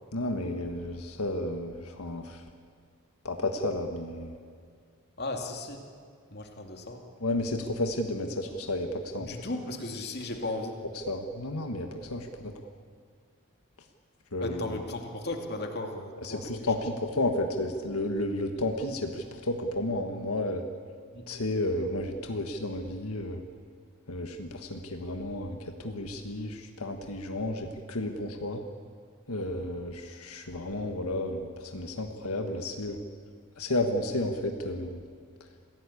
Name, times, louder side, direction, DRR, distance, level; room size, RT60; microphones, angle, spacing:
voice 1, 0.1-2.4 3.2-4.4 7.2-9.3 11.1-12.5 14.3-14.8 16.2-20.6 21.3-23.4 24.1-28.6 29.3-33.0 33.6-35.0, left 1 dB, 85° left, 4 dB, 1.6 m, -32 dB
voice 2, 5.2-5.8 6.3-7.0 9.2-10.8 14.4-16.7 21.1-21.3, left 2 dB, 45° left, 3 dB, 2.5 m, -36 dB
27.0 x 17.0 x 8.5 m, 2.1 s
head